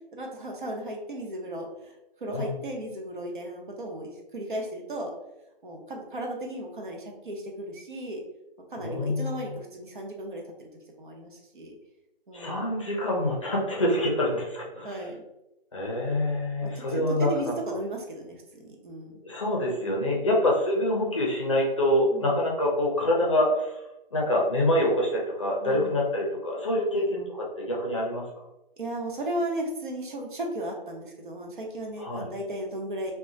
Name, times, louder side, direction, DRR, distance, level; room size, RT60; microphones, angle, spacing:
voice 1, 0.1-1.9 2.2-5.1 5.6-8.2 8.7-10.7 11.0-11.8 12.3-12.6 14.8-15.2 16.6-19.2 22.1-22.3 25.6-26.0 26.9-27.1 28.8-33.1, right 1 dB, 60° right, 0 dB, 0.7 m, -35 dB
voice 2, 2.3-2.6 8.8-9.5 12.3-15.0 15.7-17.5 19.2-23.8 24.1-28.3 32.0-32.3, left 1 dB, 35° left, -2 dB, 0.6 m, -26 dB
2.3 x 2.1 x 3.7 m, 0.91 s
hypercardioid pair, 165°, 29 cm